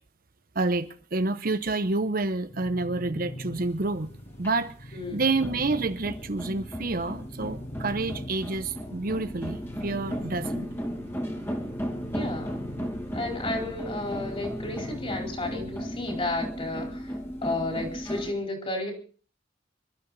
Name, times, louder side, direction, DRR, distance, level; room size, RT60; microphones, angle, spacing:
voice 1, 0.5-4.1 4.4-10.7, right 3 dB, 50° right, 0.9 m, -29 dB
sound 1, 2.5-16.3, left 1 dB, 65° left, 5.2 m, -43 dB
sound 2, 3.6-18.3, equal, 15° left, 2.7 m, -35 dB
voice 2, 4.9-5.2 12.1-12.6 13.1-17.1 17.4-18.9, left 2 dB, 30° left, 4.2 m, -32 dB
25.5 x 12.5 x 4.1 m
head